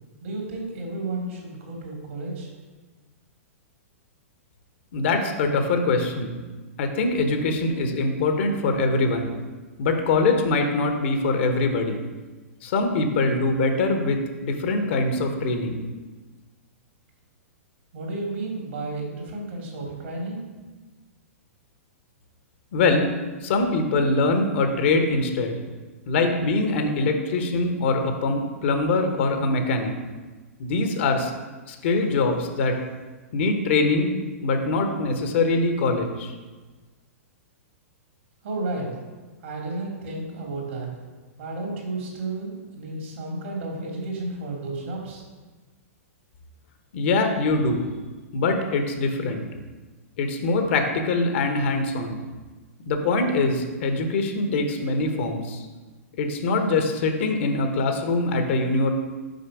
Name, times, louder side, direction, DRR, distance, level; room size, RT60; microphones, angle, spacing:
voice 1, 0.2-2.5 17.9-20.4 38.4-38.9 39.4-40.9 41.4-45.2, right 2 dB, 60° right, -1 dB, 2.6 m, -32 dB
voice 2, 4.9-6.4 6.8-9.3 9.8-12.0 12.6-15.8 22.7-23.1 23.4-25.6 26.1-29.9 30.6-31.3 31.7-32.8 33.3-34.1 34.4-36.3 46.9-47.9 48.3-49.4 50.2-52.2 52.8-55.6 56.2-58.9, left 3 dB, 55° left, 5 dB, 1.2 m, -23 dB
6.6 x 5.5 x 4.8 m, 1.3 s
figure-of-eight pair, 110°, 8 cm